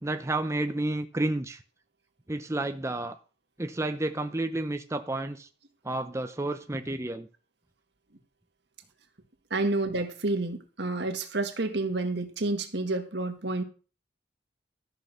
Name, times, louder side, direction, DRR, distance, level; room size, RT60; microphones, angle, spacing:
voice 1, 0.0-1.6 2.3-3.2 3.6-5.5 5.8-7.3 9.6-9.7, right 2 dB, 15° right, 0.6 m, -31 dB
voice 2, 9.5-13.6, right 2 dB, 65° right, 1.9 m, -29 dB
13.5 x 6.3 x 6.7 m
head